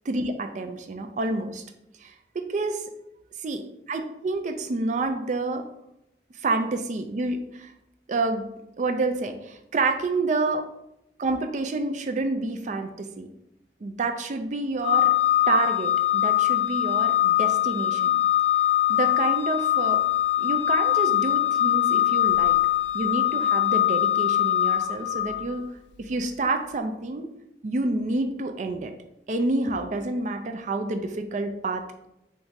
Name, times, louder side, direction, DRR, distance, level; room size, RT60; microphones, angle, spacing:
voice 1, 0.1-1.6 2.0-2.8 3.4-5.7 6.4-7.7 8.1-8.4 8.8-10.6 11.2-13.3 13.8-15.1 15.5-18.1 18.9-20.0 20.4-22.6 22.9-25.6 26.0-27.3 27.6-28.9 29.3-32.1, right 3 dB, 45° right, 7 dB, 0.4 m, -28 dB
Organ, 14.8-25.6, left 12 dB, 85° left, 0.4 m, -22 dB
4.5 x 2.6 x 3.8 m, 0.84 s
head